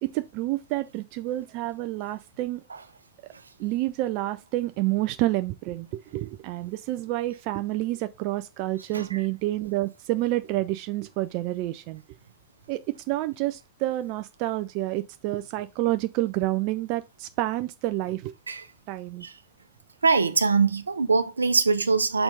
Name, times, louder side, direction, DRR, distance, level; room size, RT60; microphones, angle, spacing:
voice 1, 0.0-2.6 3.2-3.3 3.6-12.0 12.7-18.3 18.9-19.2, right 16 dB, 45° right, 0.4 m, -29 dB
voice 2, 20.0-22.2, right 4 dB, 75° right, 0.7 m, -23 dB
6.6 x 4.3 x 3.8 m
figure-of-eight pair, 90°, 0 cm